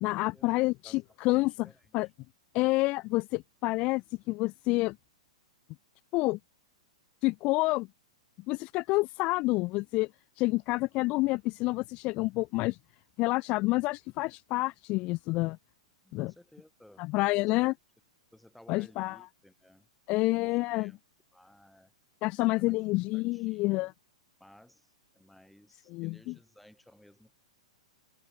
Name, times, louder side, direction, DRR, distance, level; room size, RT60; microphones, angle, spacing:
voice 1, 0.0-1.5 1.9-2.1 2.5-5.0 6.1-6.4 7.2-7.9 8.5-10.1 10.4-12.8 13.2-15.6 16.1-16.3 17.1-17.7 18.7-19.2 20.1-20.9 22.2-23.9 25.9-26.3, left 22 dB, 35° left, 0.5 m, -28 dB
voice 2, 0.8-2.1 16.0-17.1 17.4-17.7 18.3-21.0 21.3-21.9 22.5-22.7 23.1-23.9 24.4-27.4, left 1 dB, ahead, 4.7 m, -58 dB
open air
figure-of-eight pair, 105°, 3 cm